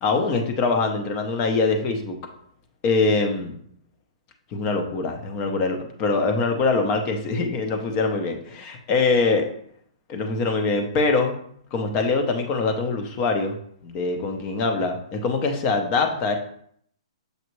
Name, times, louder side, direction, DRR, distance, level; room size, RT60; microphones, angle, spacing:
voice 1, 0.0-2.2 2.8-3.5 4.5-9.4 10.1-11.4 11.7-13.6 13.8-16.4, left 3 dB, 30° left, 4 dB, 0.7 m, -23 dB
6.5 x 2.4 x 3.1 m, 0.65 s
hypercardioid pair, 130°, 3 cm